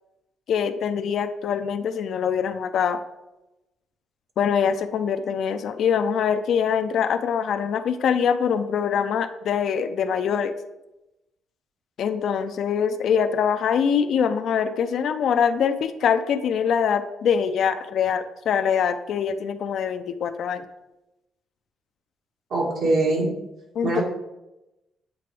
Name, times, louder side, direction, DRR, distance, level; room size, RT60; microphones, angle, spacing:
voice 1, 0.5-3.0 4.4-10.5 12.0-20.6 23.8-23.9, left 7 dB, 70° left, 10 dB, 0.4 m, -23 dB
voice 2, 22.5-23.3 23.8-24.0, right 2 dB, 70° right, -2 dB, 1.9 m, -22 dB
8.3 x 3.4 x 3.3 m, 0.95 s
cardioid pair, 90°, 0 cm